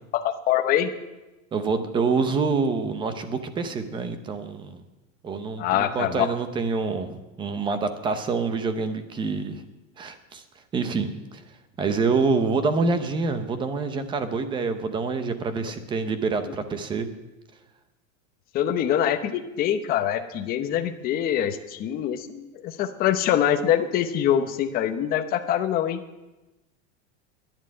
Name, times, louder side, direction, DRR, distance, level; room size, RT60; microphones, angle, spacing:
voice 1, 0.1-0.9 5.6-6.3 18.5-26.0, left 10 dB, 20° left, 7 dB, 0.8 m, -24 dB
voice 2, 1.5-4.8 5.2-9.6 10.0-10.4 10.7-11.4 11.8-17.1, right 4 dB, 10° right, 10 dB, 0.6 m, -26 dB
11.0 x 10.0 x 9.5 m, 1.1 s
supercardioid pair, 170°, 41 cm